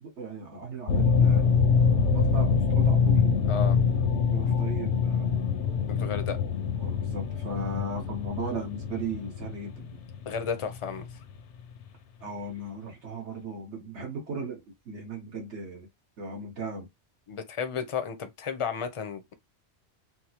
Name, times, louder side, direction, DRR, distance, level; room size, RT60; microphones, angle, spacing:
voice 1, 0.0-1.4 2.1-3.6 4.3-5.4 6.8-10.0 12.2-15.9 16.2-16.9, right 3 dB, 80° right, 1.6 m, -37 dB
sound 1, 0.9-11.9, left 6 dB, 85° left, 0.9 m, -25 dB
voice 2, 5.9-6.4 10.3-11.0 17.3-19.3, left 6 dB, 40° left, 0.5 m, -33 dB
4.4 x 2.0 x 2.9 m
omnidirectional pair, 1.2 m